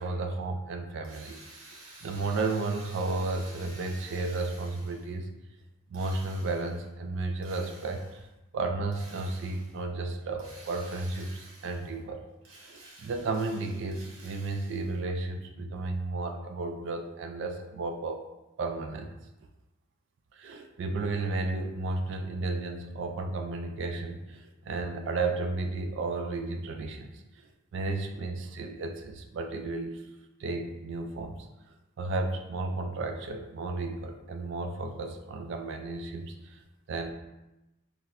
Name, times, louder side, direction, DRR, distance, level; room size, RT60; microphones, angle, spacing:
voice 1, 0.0-1.4 1.7-5.3 5.9-8.3 8.5-12.2 12.6-18.2 18.6-19.2 20.3-30.0 30.4-31.5 32.0-36.6 36.9-37.1, right 3 dB, 55° right, 4 dB, 0.3 m, -33 dB
Drill, 1.0-5.2 5.9-6.9 7.4-8.3 8.9-9.8 10.4-12.0 12.4-15.0, right 2 dB, 75° right, 0.8 m, -51 dB
4.1 x 2.0 x 2.5 m, 0.97 s
head